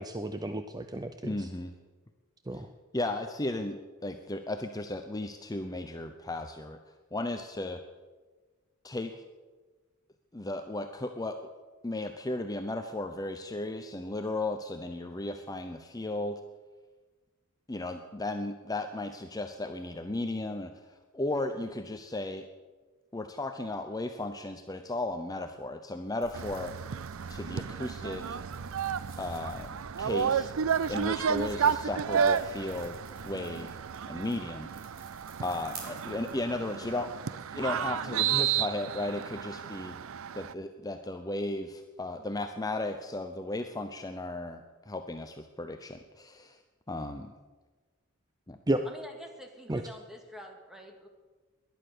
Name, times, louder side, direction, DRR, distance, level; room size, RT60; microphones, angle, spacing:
voice 1, 0.0-1.5 2.5-2.7 48.7-48.9 49.7-49.8, right 1 dB, 20° right, 8 dB, 0.6 m, -32 dB
voice 2, 1.2-1.8 2.5-2.6 2.9-6.8 7.1-7.8 8.8-9.2 10.3-11.4 11.8-16.4 17.7-20.7 21.1-22.5 23.1-26.7 27.3-28.4 29.2-30.5 30.9-33.8 34.1-34.7 35.4-37.1 37.5-40.0 40.3-46.6 46.9-47.3 48.5-48.6, left 2 dB, 20° left, 7 dB, 0.7 m, -35 dB
sound 1, 26.2-37.0, right 2 dB, 45° right, 3.7 m, -51 dB
sound 2, 26.3-40.5, right 7 dB, 70° right, 0.5 m, -32 dB
voice 3, 48.8-51.1, equal, ahead, 3 dB, 2.0 m, -46 dB
19.0 x 11.0 x 6.7 m, 1.3 s
head